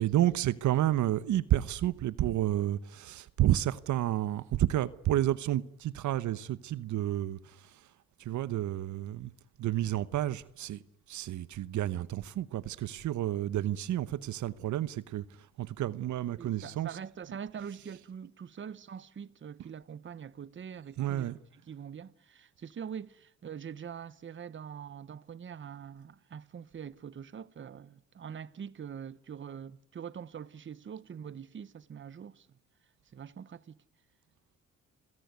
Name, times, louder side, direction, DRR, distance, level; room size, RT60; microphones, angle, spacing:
voice 1, 0.0-7.8 8.2-9.3 9.6-10.8 11.1-15.2 15.6-16.9 21.0-21.4, right 13 dB, 75° right, 1.0 m, -30 dB
voice 2, 16.4-21.3 21.7-32.5 33.1-33.8, right 7 dB, 40° right, 1.1 m, -44 dB
29.5 x 17.5 x 9.5 m
cardioid pair, 90°, 30 cm